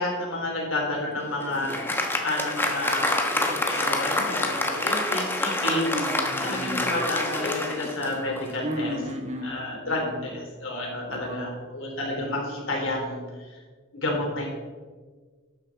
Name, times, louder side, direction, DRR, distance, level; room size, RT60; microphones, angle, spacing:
voice 1, 0.0-5.9 6.4-9.0 9.4-10.0 10.3-13.5 13.9-14.5, left 2 dB, 75° left, -1 dB, 3.4 m, -30 dB
Applause, 1.1-8.6, left 2 dB, 10° left, 1.2 m, -27 dB
voice 2, 5.6-6.9 8.6-10.4 11.1-11.5, equal, 35° right, 3 dB, 1.5 m, -33 dB
12.5 x 9.0 x 4.1 m, 1.4 s
head